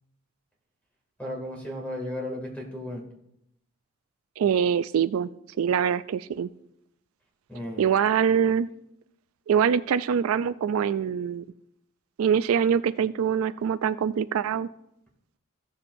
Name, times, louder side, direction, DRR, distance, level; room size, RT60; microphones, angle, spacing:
voice 1, 1.2-3.0 7.5-7.8, left 1 dB, 5° left, -1 dB, 2.3 m, -34 dB
voice 2, 4.4-5.3 5.6-6.5 7.8-8.7 9.5-11.4 12.2-14.7, right 7 dB, 80° right, 14 dB, 0.3 m, -24 dB
15.5 x 7.2 x 2.6 m, 0.79 s
head